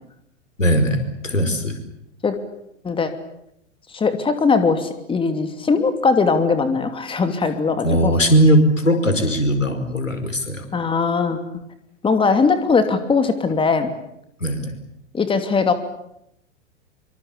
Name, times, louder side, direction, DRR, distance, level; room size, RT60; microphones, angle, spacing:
voice 1, 0.6-1.8 7.8-10.6 14.4-14.8, equal, 90° left, 8 dB, 5.1 m, -19 dB
voice 2, 3.9-8.1 10.7-11.4 12.0-13.9 15.1-15.7, left 4 dB, 15° left, 9 dB, 2.8 m, -20 dB
25.5 x 25.0 x 8.6 m, 0.78 s
figure-of-eight pair, 100°, 37 cm